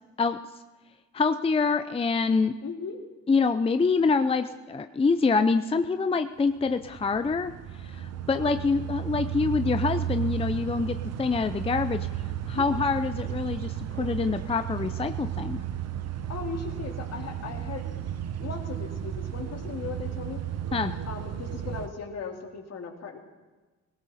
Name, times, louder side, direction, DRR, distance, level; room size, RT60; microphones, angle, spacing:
voice 1, 1.1-2.5 3.3-7.5 7.8-12.1 12.5-15.6 20.7-21.0, left 4 dB, 20° left, 9 dB, 0.5 m, -26 dB
voice 2, 2.6-3.0 8.4-8.5 12.5-12.7 16.3-18.1 18.4-20.4 21.1-23.2, left 5 dB, 55° left, 3 dB, 2.3 m, -38 dB
sound 1, 6.6-21.9, right 11 dB, 55° right, 0.9 m, -34 dB
18.0 x 16.5 x 4.2 m, 1.2 s
cardioid pair, 90°, 30 cm